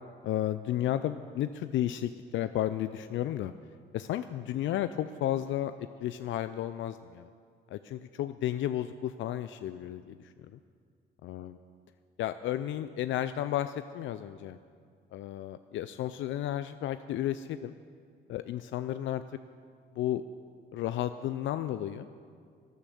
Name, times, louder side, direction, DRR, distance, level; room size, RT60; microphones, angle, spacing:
voice 1, 0.2-3.5 3.9-5.7 6.0-7.3 7.7-10.2 11.2-11.5 12.2-14.6 15.1-17.7 18.3-19.2 20.0-20.2 20.7-22.1, left 12 dB, 75° left, 11 dB, 0.4 m, -33 dB
12.5 x 10.0 x 7.0 m, 2.2 s
cardioid pair, 90°, 20 cm